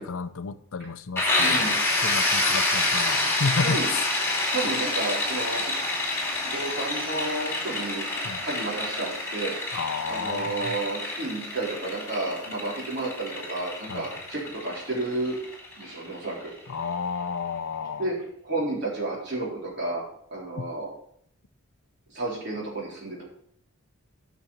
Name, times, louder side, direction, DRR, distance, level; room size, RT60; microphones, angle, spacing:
voice 1, 0.0-1.8 2.0-3.8 8.2-8.4 9.7-10.7 13.9-14.1 16.7-18.1 20.6-20.7, left 5 dB, 75° left, 0.6 m, -31 dB
sound 1, 1.2-16.7, left 2 dB, 10° left, 2.5 m, -28 dB
voice 2, 1.4-1.8 3.6-3.9 4.5-6.0 6.4-8.1 8.4-9.5 10.1-15.4 15.8-16.5 18.0-18.1 18.4-20.0 20.3-20.9 22.1-23.2, right 2 dB, 50° right, 4.0 m, -31 dB
9.0 x 6.1 x 5.9 m
head